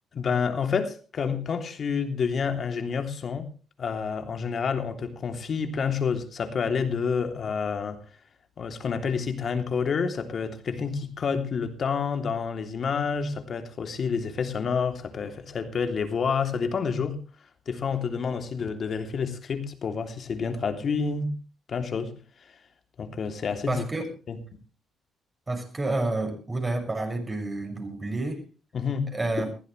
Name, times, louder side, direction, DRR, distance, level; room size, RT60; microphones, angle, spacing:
voice 1, 0.1-3.5 3.8-8.0 8.6-17.2 17.7-21.3 21.7-22.1 23.0-23.8 24.3-24.4 28.7-29.1, left 6 dB, 50° left, 3.2 m, -28 dB
voice 2, 23.7-24.1 25.5-28.4 29.1-29.5, right 2 dB, 20° right, 6.5 m, -29 dB
21.5 x 15.5 x 3.4 m
cardioid pair, 90°, 0 cm